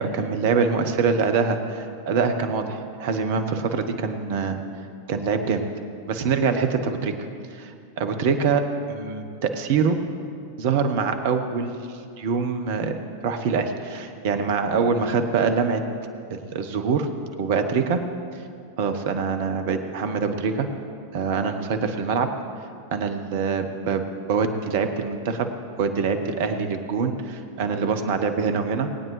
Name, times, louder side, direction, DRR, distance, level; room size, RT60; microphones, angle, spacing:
voice 1, 0.0-4.6 5.1-5.6 6.1-7.1 7.5-7.7 8.0-8.6 8.9-10.0 10.6-11.8 12.2-12.9 13.2-15.8 16.3-17.1 17.4-18.0 18.8-20.7 21.1-22.3 22.9-24.0 24.3-25.5 25.8-28.9, right 5 dB, 50° right, 8 dB, 1.0 m, -24 dB
20.0 x 9.0 x 3.3 m, 2.4 s
figure-of-eight pair, 90°, 0 cm